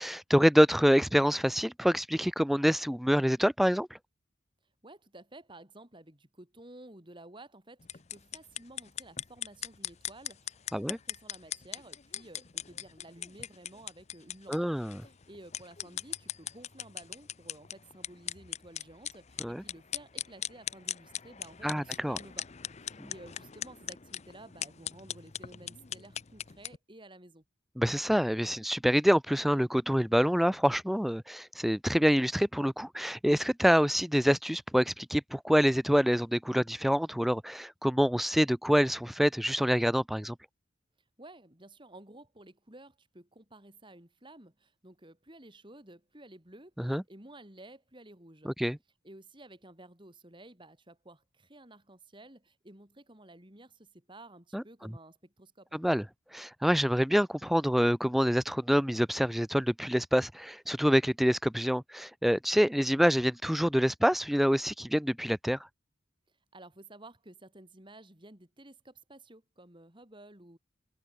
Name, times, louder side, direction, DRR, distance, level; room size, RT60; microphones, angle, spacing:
voice 1, 0.0-3.9 10.7-11.0 14.5-15.0 19.4-19.6 21.6-22.2 23.0-23.1 27.8-40.4 46.8-47.0 48.5-48.8 54.5-54.6 55.7-56.0 56.3-65.6, equal, ahead, 0.3 m, -26 dB
voice 2, 4.8-14.6 15.0-22.5 22.8-27.4 41.2-48.5 49.0-55.8 66.5-70.6, right 1 dB, 25° right, 3.4 m, -53 dB
sound 1, 7.8-26.8, left 10 dB, 35° left, 0.7 m, -40 dB
head